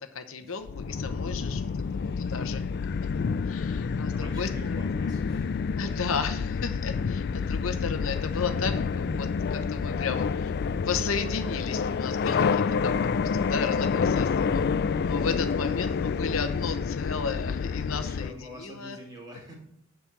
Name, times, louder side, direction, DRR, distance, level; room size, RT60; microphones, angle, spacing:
voice 1, 0.1-1.6 1.9-2.6 3.4-4.8 5.7-14.6 15.0-19.0, left 5 dB, 75° left, 8 dB, 0.8 m, -34 dB
sound 1, 0.7-18.3, left 5 dB, 50° left, 0.3 m, -28 dB
voice 2, 3.9-5.7 18.0-19.5, equal, 20° right, -1 dB, 2.3 m, -46 dB
Thunder, 7.4-17.0, right 2 dB, 40° right, 0.6 m, -52 dB
7.2 x 5.3 x 7.3 m, 0.76 s
head